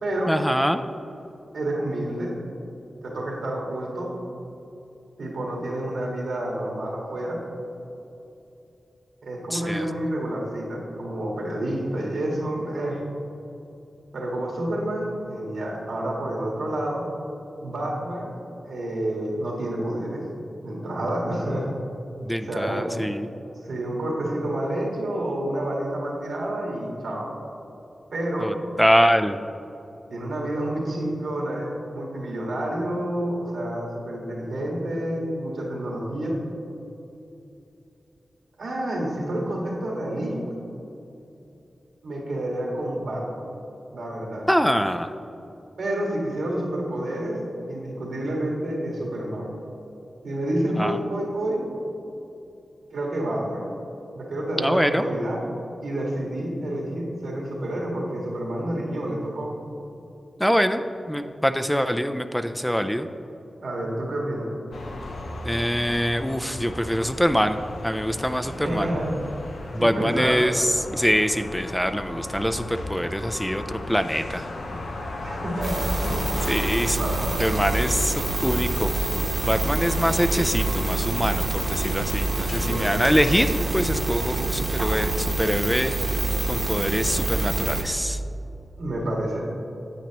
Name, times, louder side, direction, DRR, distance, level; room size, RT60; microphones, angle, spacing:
voice 1, 0.3-0.8 9.5-9.9 22.2-23.3 28.4-29.4 44.5-45.1 50.8-51.0 54.6-55.1 60.4-60.8 61.1-63.1 65.5-67.6 67.8-68.9 69.7-74.5 76.5-77.0 77.4-78.9 79.4-86.2 86.5-88.2, equal, 5° left, 8 dB, 0.4 m, -24 dB
voice 2, 1.5-2.3 3.0-4.1 5.2-7.4 9.2-13.0 14.1-17.0 17.6-18.3 18.7-20.2 20.6-21.7 22.4-23.0 23.4-27.3 28.1-28.5 30.1-36.4 38.6-40.6 42.0-43.4 43.9-44.4 45.8-47.4 47.7-49.5 50.2-51.6 52.9-53.6 54.1-55.4 55.8-59.5 63.6-64.5 68.6-69.1 69.8-70.5 75.2-76.4 76.9-77.4 82.7-83.2 88.8-89.4, right 1 dB, 90° right, -2 dB, 1.8 m, -29 dB
sound 1, 64.7-83.9, left 2 dB, 90° left, 0.7 m, -36 dB
sound 2, 75.6-87.8, right 2 dB, 40° right, 1.0 m, -26 dB
9.0 x 8.3 x 3.0 m, 2.9 s
cardioid pair, 50°, 0 cm